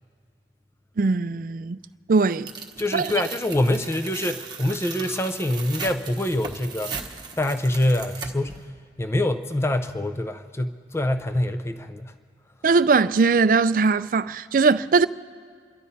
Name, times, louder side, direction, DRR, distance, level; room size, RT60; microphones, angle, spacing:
voice 1, 1.0-1.8 2.1-2.5 2.9-3.1 12.6-15.1, right 4 dB, 50° right, 0.4 m, -20 dB
Tearing, 2.5-8.6, right 5 dB, 25° right, 1.2 m, -37 dB
voice 2, 2.8-6.9 7.4-8.5 9.0-12.1, left 1 dB, 15° left, 0.5 m, -25 dB
29.0 x 12.0 x 4.2 m
head